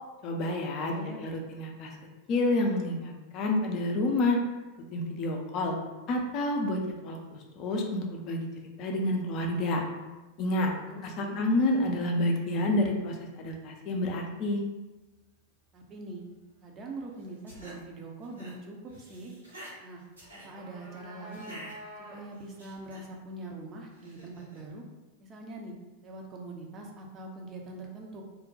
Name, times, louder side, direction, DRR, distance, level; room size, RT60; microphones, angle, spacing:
voice 1, 0.2-1.9 2.3-4.4 4.9-5.7 6.1-8.5 8.8-9.8 10.4-10.7 11.0-14.6, left 1 dB, 40° left, 2 dB, 0.5 m, -29 dB
voice 2, 0.8-1.2 10.7-11.4 15.7-16.2 16.6-19.3 19.8-20.0 20.4-21.6 22.1-24.8 25.2-25.8 26.0-28.2, right 2 dB, 25° right, 0 dB, 0.6 m, -43 dB
sound 1, 17.2-17.8 18.2-18.5 18.9-19.8 20.1-20.5 21.3-21.8 22.3-23.0 23.9-24.6, right 1 dB, 80° right, 0.9 m, -48 dB
sound 2, 20.2-22.5, equal, 60° right, 1.0 m, -48 dB
2.6 x 2.1 x 3.9 m, 1.1 s
figure-of-eight pair, 90°, 0 cm